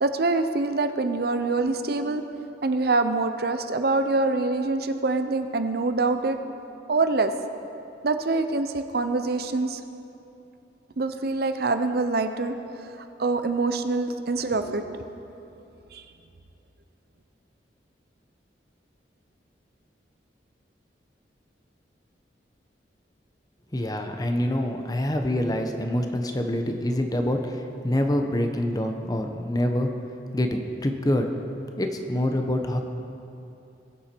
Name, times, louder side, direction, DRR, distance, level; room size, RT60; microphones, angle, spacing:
voice 1, 0.0-2.2 2.6-6.4 6.9-7.3 8.0-9.8 11.0-15.0 15.9-16.0, right 3 dB, 60° right, 8 dB, 0.6 m, -25 dB
voice 2, 23.7-29.9 30.3-31.3 31.8-32.8, left 1 dB, 20° left, 5 dB, 0.8 m, -26 dB
20.5 x 7.3 x 4.4 m, 2.8 s
head